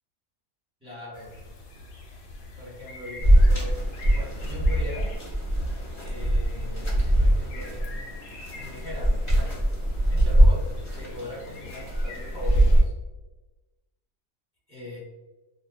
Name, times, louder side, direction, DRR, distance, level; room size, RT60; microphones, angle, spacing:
voice 1, 0.8-1.3 2.6-3.7 4.1-5.1 6.0-6.9 7.1-7.9 8.5-9.5 10.1-10.6 11.0-12.9 14.7-15.0, left 1 dB, 5° right, -9 dB, 1.0 m, -40 dB
sound 1, 1.1-12.8, left 2 dB, 75° left, 0.9 m, -44 dB
sound 2, 3.2-12.8, right 1 dB, 40° left, 0.8 m, -22 dB
2.5 x 2.2 x 2.4 m, 1.1 s
omnidirectional pair, 1.4 m